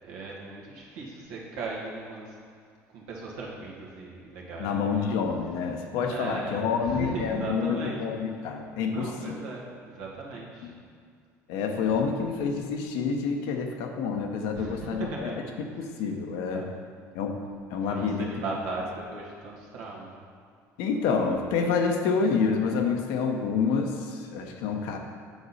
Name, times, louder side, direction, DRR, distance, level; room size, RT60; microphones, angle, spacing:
voice 1, 0.0-2.3 2.9-5.0 6.1-8.0 8.9-10.7 14.6-15.5 16.5-16.7 17.7-20.2, right 3 dB, 80° right, -3 dB, 1.7 m, -37 dB
voice 2, 4.6-9.3 10.6-10.7 11.5-15.3 15.7-16.6 17.1-17.4 17.7-18.3 20.8-25.0, left 5 dB, 75° left, 3 dB, 0.9 m, -28 dB
8.1 x 6.1 x 4.2 m, 2.1 s
supercardioid pair, 80°, 7 cm